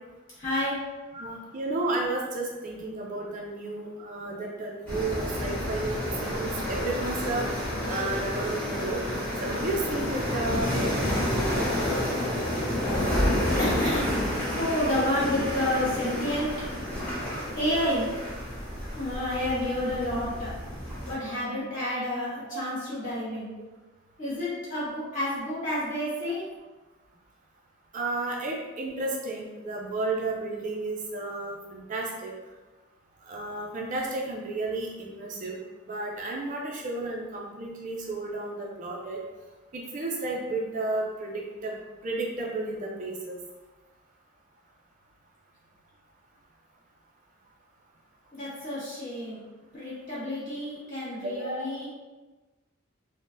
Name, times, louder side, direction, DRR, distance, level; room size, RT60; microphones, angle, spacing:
voice 1, 0.4-0.8 12.8-13.0 13.6-14.1 14.5-16.5 17.5-18.1 18.9-20.5 21.1-23.5 24.2-26.4 48.3-49.4 49.7-51.9, left 1 dB, 40° left, -10 dB, 1.5 m, -30 dB
voice 2, 1.1-7.5 7.9-9.0 9.4-10.9 22.5-22.6 27.9-32.3 33.3-35.5 35.9-39.2 39.7-41.7 42.0-43.4 51.2-51.7, right 2 dB, 40° right, -2 dB, 0.4 m, -32 dB
sound 1, 4.9-21.1, left 1 dB, 10° left, 1.4 m, -29 dB
3.8 x 2.1 x 2.5 m, 1.2 s
head